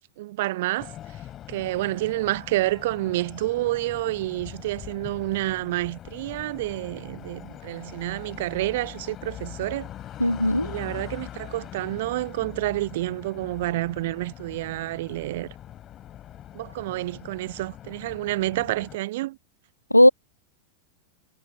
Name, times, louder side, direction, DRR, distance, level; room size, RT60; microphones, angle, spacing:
voice 1, 0.2-0.9 1.5-9.9 10.6-15.5 16.5-19.4, right 17 dB, 55° right, 0.7 m, -29 dB
sound 1, 0.8-19.0, left 11 dB, 30° left, 3.4 m, -42 dB
voice 2, 10.2-10.7 19.9-20.1, left 1 dB, 85° left, 0.3 m, -16 dB
figure-of-eight pair, 90°, 0 cm